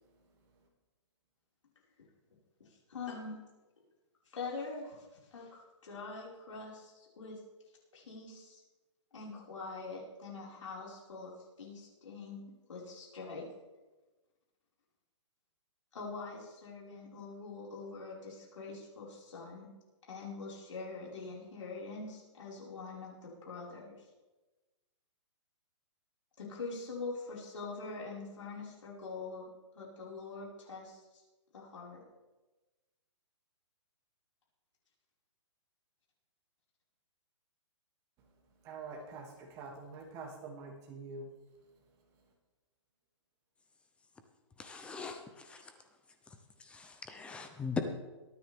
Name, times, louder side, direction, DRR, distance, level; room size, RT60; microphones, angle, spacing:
voice 1, 2.6-3.4 4.3-7.4 7.9-8.6 9.1-11.3 11.6-13.4 15.9-19.7 20.1-23.9 26.4-29.5 29.7-31.0 31.5-32.0, left 3 dB, 85° left, -4 dB, 5.2 m, -44 dB
voice 2, 38.6-41.3, right 3 dB, 20° right, -1 dB, 2.4 m, -45 dB
voice 3, 44.6-45.2 45.5-45.6 46.7-47.8, left 5 dB, 5° left, 7 dB, 0.6 m, -39 dB
23.0 x 9.6 x 3.5 m, 1.2 s
hypercardioid pair, 160°, 16 cm